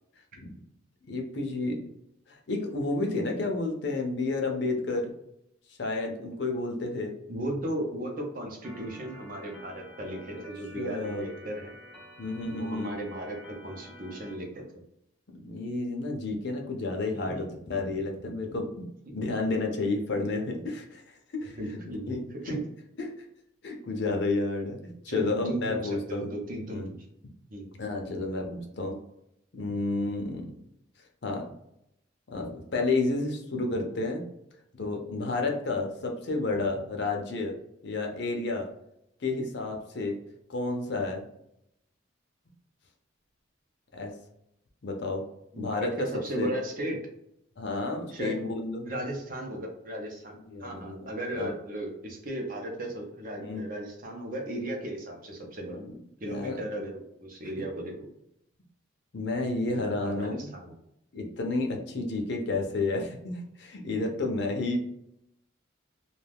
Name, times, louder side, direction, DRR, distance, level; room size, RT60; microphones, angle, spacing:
voice 1, 1.1-1.8 2.3-5.1 5.7-7.1 10.7-11.2 12.2-12.9 15.4-18.9 19.1-21.6 22.1-22.2 22.5-22.6 23.0-23.1 23.6-24.8 25.0-26.3 26.6-26.9 27.8-28.9 29.5-30.5 31.2-31.5 32.3-34.2 34.7-37.5 37.8-38.7 39.2-40.2 40.5-41.2 43.9-44.1 44.8-45.2 45.6-46.1 46.4-46.5 47.6-48.9 50.5-51.1 51.4-51.5 53.4-53.6 55.7-55.9 56.2-56.6 59.1-60.5 61.1-64.8, left 3 dB, 55° left, 2 dB, 0.5 m, -31 dB
voice 2, 7.3-11.7 12.5-14.6 17.1-17.4 21.6-22.2 22.4-22.6 25.1-26.8 27.5-27.7 45.5-47.0 48.1-48.4 48.9-50.3 50.6-55.8 56.2-57.9 59.7-60.7, right 1 dB, 40° right, 1 dB, 0.6 m, -36 dB
Organ, 8.6-14.3, equal, ahead, 0.7 m, -49 dB
2.4 x 2.3 x 3.4 m, 0.78 s
head